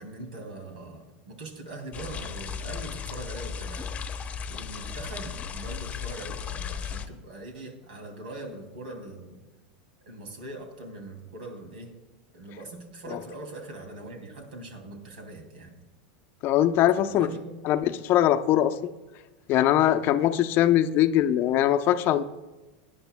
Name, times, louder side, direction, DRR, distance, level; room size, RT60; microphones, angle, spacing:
voice 1, 0.0-4.0 4.5-9.4 10.1-11.9 12.3-15.8 16.9-18.0, right 2 dB, 85° right, 4 dB, 2.5 m, -41 dB
sound 1, 1.9-7.1, left 7 dB, 30° left, 0.9 m, -36 dB
voice 2, 16.4-17.3 17.6-18.7 19.5-22.2, left 12 dB, 50° left, 10 dB, 0.6 m, -22 dB
18.0 x 9.8 x 2.2 m, 1.2 s
hypercardioid pair, 110°, 5 cm